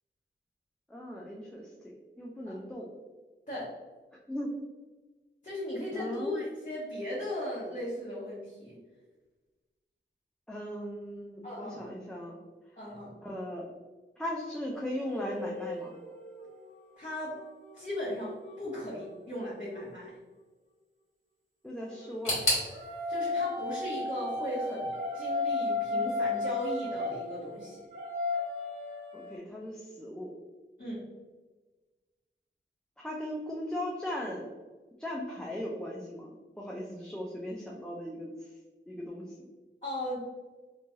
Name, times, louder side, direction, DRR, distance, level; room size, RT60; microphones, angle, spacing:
voice 1, 0.9-2.9 4.3-4.5 5.9-6.4 10.5-12.4 13.2-13.7 14.2-16.0 21.6-22.4 29.1-30.4 33.0-34.5 35.0-36.3 36.6-38.6 38.9-39.5, equal, 5° left, -3 dB, 0.3 m, -38 dB
voice 2, 5.4-8.8 11.4-11.9 12.8-13.2 17.0-17.4 17.7-20.2 23.1-27.8 30.8-31.1 39.8-40.2, equal, 40° left, -9 dB, 0.9 m, -37 dB
sound 1, 14.7-19.9 21.8-29.4, left 3 dB, 65° right, 1.1 m, -35 dB
sound 2, 22.2-25.1 25.4-26.2 26.5-26.6 27.4-27.5, left 1 dB, 80° left, 1.3 m, -35 dB
3.0 x 2.2 x 2.6 m, 1.3 s
wide cardioid pair, 80°, 21 cm